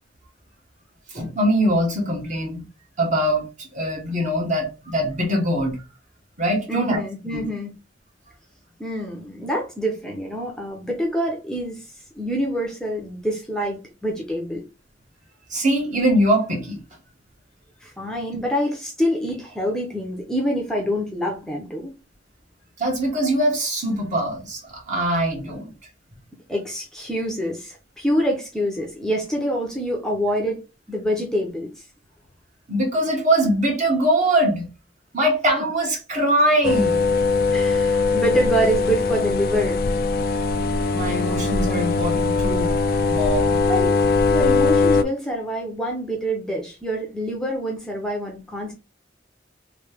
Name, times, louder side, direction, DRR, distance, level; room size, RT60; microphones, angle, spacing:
voice 1, 1.1-2.6 3.0-5.8 6.4-7.0 7.3-7.5 15.5-16.8 22.8-25.7 32.7-34.7 35.1-37.1 40.9-42.7 43.1-43.6, right 1 dB, 45° right, 1.3 m, -22 dB
voice 2, 6.7-7.7 8.8-14.7 17.8-22.0 26.5-30.6 30.9-31.8 37.5-39.8 43.7-48.7, equal, 5° left, 0.6 m, -26 dB
sound 1, 36.6-45.0, left 3 dB, 55° left, 0.4 m, -20 dB
3.2 x 2.7 x 3.4 m
head